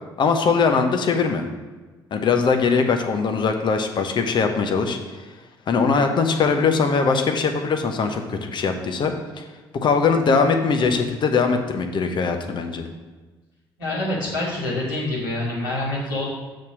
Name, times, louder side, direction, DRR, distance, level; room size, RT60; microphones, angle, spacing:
voice 1, 0.2-1.5 2.1-5.0 5.7-9.5 9.8-12.9, left 5 dB, 40° left, 5 dB, 0.9 m, -21 dB
voice 2, 13.8-16.2, left 1 dB, 75° left, -7 dB, 2.3 m, -26 dB
6.4 x 4.1 x 6.2 m, 1.3 s
figure-of-eight pair, 45°, 12 cm